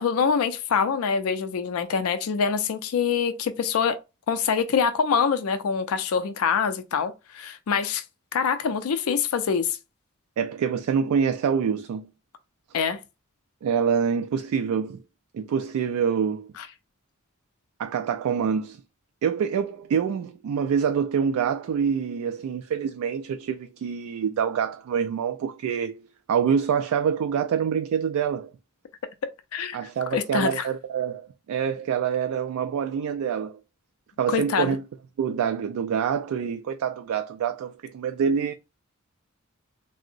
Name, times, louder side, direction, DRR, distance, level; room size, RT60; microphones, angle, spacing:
voice 1, 0.0-4.0 4.3-8.0 8.3-9.8 12.7-13.0 16.6-16.7 29.5-29.8 30.1-30.7 34.3-34.8, left 6 dB, 85° left, 0.4 m, -25 dB
voice 2, 10.4-12.1 13.6-15.0 15.3-16.5 17.8-18.8 19.2-26.0 26.3-28.5 29.7-33.6 34.2-34.8 35.2-38.5, right 7 dB, 90° right, 0.3 m, -26 dB
3.6 x 2.0 x 2.5 m
head